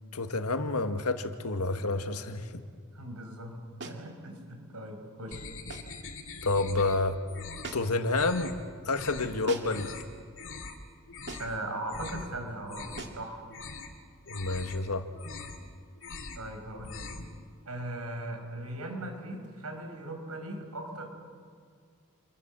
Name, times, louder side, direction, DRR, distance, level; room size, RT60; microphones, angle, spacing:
voice 1, 0.1-2.5 6.4-7.2 7.7-8.5 8.8-9.9 14.3-15.1, left 3 dB, 85° left, 8 dB, 1.7 m, -29 dB
voice 2, 2.9-3.5 3.8-5.5 11.4-13.5 16.4-17.1 17.7-21.1, right 1 dB, 90° right, 4 dB, 5.5 m, -39 dB
sound 1, 3.8-4.1 5.7-6.0 7.6-8.1 9.5-9.9 11.3-11.6 13.0-13.3, right 3 dB, 50° right, 2.3 m, -42 dB
sound 2, 5.3-7.0 7.3-7.8 8.1-8.5 8.9-9.3 9.6-10.0 10.4-10.8 11.1-11.5 11.9-12.3 12.6-13.2 13.5-13.9 14.3-14.8 15.1-15.7 16.0-16.4 16.7-17.3, left 4 dB, 60° left, 2.5 m, -42 dB
28.5 x 23.0 x 7.5 m, 2.1 s
head